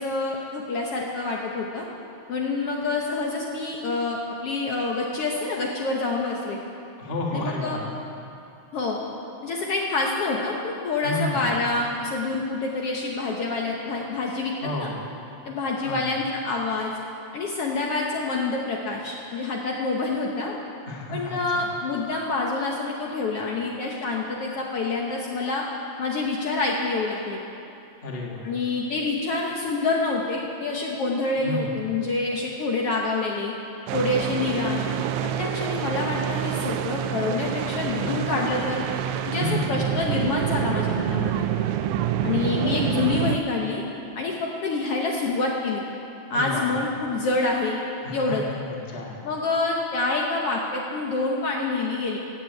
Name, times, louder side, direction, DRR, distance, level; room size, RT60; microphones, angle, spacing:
voice 1, 0.0-1.9 2.3-6.6 7.3-7.8 8.7-9.0 9.4-14.9 15.5-16.9 17.3-20.6 21.1-25.6 26.0-27.4 28.4-33.5 33.9-34.9 35.2-38.8 39.3-41.5 42.2-43.8 44.2-45.8 46.3-47.8 48.1-48.4 49.2-52.2, left 3 dB, 60° left, -1 dB, 1.8 m, -27 dB
voice 2, 7.0-8.0 11.0-11.5 14.6-15.0 15.8-16.0 20.9-21.7 28.0-28.5 31.4-31.8 38.0-38.3 39.4-39.8 46.3-46.7 48.0-49.2, left 1 dB, 25° left, -2 dB, 1.4 m, -31 dB
sound 1, 33.9-43.4, right 10 dB, 80° right, 1.9 m, -27 dB
15.0 x 7.6 x 9.2 m, 2.7 s
omnidirectional pair, 3.4 m